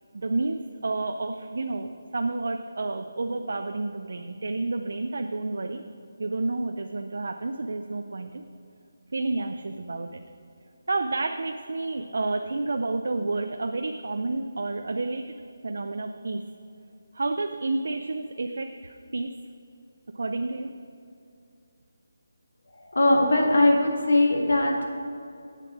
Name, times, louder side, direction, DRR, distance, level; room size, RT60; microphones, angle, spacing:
voice 1, 0.1-0.6 0.8-5.8 6.2-8.4 9.1-10.2 10.9-15.2 15.6-16.4 17.1-19.3 20.1-20.7, right 3 dB, 65° right, 6 dB, 0.5 m, -30 dB
voice 2, 22.9-24.8, left 1 dB, 80° left, 0 dB, 1.9 m, -20 dB
8.4 x 6.8 x 6.0 m, 2.5 s
figure-of-eight pair, 170°, 0 cm